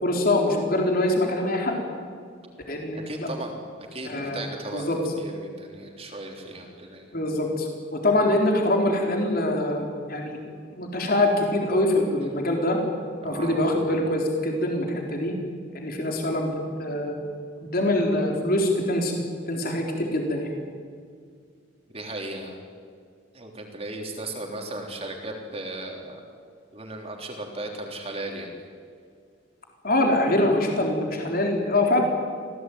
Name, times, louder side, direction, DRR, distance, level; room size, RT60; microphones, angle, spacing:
voice 1, 0.0-1.8 2.7-3.3 4.0-4.4 4.7-5.0 7.1-10.4 10.7-12.8 13.2-15.3 15.7-16.5 16.8-17.2 17.7-19.2 19.5-20.5 29.8-32.0, left 1 dB, 50° left, 1 dB, 4.1 m, -24 dB
voice 2, 3.1-3.6 3.9-4.9 5.2-7.1 13.2-13.7 21.9-22.5 23.3-26.2 26.7-28.5, right 2 dB, 30° right, 1 dB, 3.6 m, -36 dB
25.5 x 17.5 x 9.4 m, 2.1 s
head